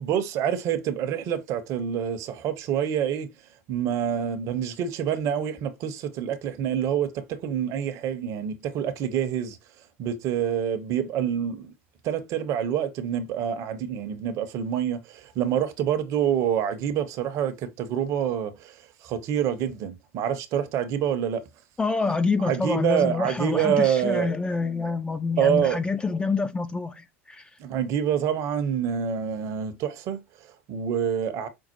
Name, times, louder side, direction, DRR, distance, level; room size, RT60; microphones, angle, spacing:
voice 1, 0.0-3.3 3.7-9.6 10.0-11.7 12.0-21.4 22.4-24.4 25.4-25.8 27.6-31.5, right 9 dB, 45° right, 0.6 m, -27 dB
voice 2, 21.8-27.5, left 4 dB, 15° left, 0.3 m, -27 dB
5.2 x 2.0 x 2.9 m
figure-of-eight pair, 85°, 7 cm